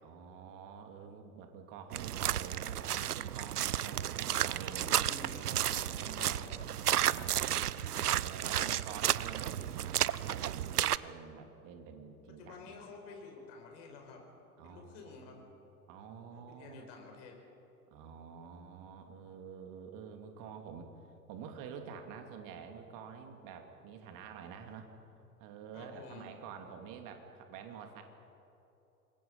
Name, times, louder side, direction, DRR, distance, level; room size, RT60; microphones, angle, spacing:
voice 1, 0.0-5.1 5.8-6.5 7.1-12.7 14.6-15.5 15.9-16.9 17.9-20.9 21.3-24.9 25.4-28.0, right 6 dB, 45° right, 5 dB, 2.9 m, -48 dB
sound 1, 1.9-11.0, right 11 dB, 80° right, 0.6 m, -32 dB
voice 2, 4.8-6.7 12.4-14.2 14.6-15.4 16.3-17.4 25.7-26.3, left 4 dB, 50° left, 2 dB, 5.2 m, -50 dB
27.5 x 22.5 x 5.6 m, 2.9 s
figure-of-eight pair, 85°, 45 cm